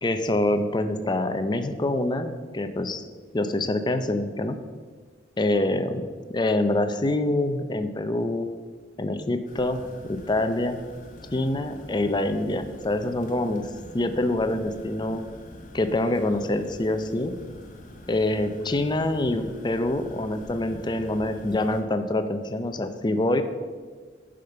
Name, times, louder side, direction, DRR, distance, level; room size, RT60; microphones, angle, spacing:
voice 1, 0.0-3.0 3.3-4.6 5.4-6.1 6.3-8.5 9.0-10.8 11.3-13.7 13.9-15.2 15.7-17.3 18.1-23.4, left 1 dB, 25° left, 9 dB, 0.6 m, -25 dB
sound 1, 9.5-21.8, left 1 dB, 45° left, 1.2 m, -45 dB
10.5 x 5.1 x 5.7 m, 1.5 s
head